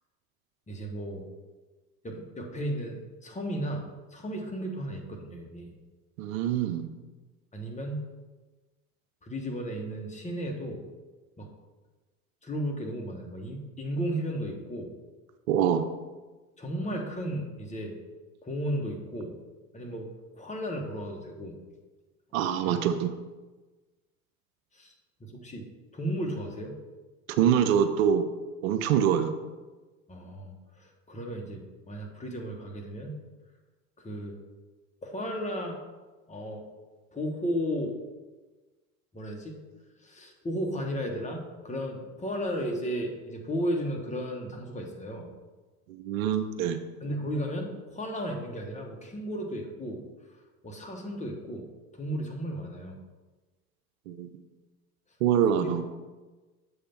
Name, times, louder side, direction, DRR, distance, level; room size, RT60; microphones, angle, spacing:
voice 1, 0.7-1.3 2.0-3.9 4.1-5.7 7.5-8.1 9.2-10.8 11.4-11.5 12.4-14.9 16.6-17.9 18.4-19.3 19.7-21.6 22.6-22.9 24.7-24.9 25.2-25.7 25.9-26.7 30.1-33.2 34.0-34.4 35.0-35.8 36.3-36.6 37.1-37.9 39.1-39.6 40.0-45.3 47.0-50.0 50.6-51.7 51.9-53.0 55.5-55.7, equal, 15° left, 1 dB, 1.4 m, -34 dB
voice 2, 6.2-6.9 15.5-15.8 22.3-23.1 27.4-28.3 28.6-29.3 45.9-46.8 54.1-54.3 55.2-55.8, right 9 dB, 70° right, 9 dB, 0.7 m, -25 dB
7.1 x 3.4 x 5.8 m, 1.2 s
hypercardioid pair, 80°, 43 cm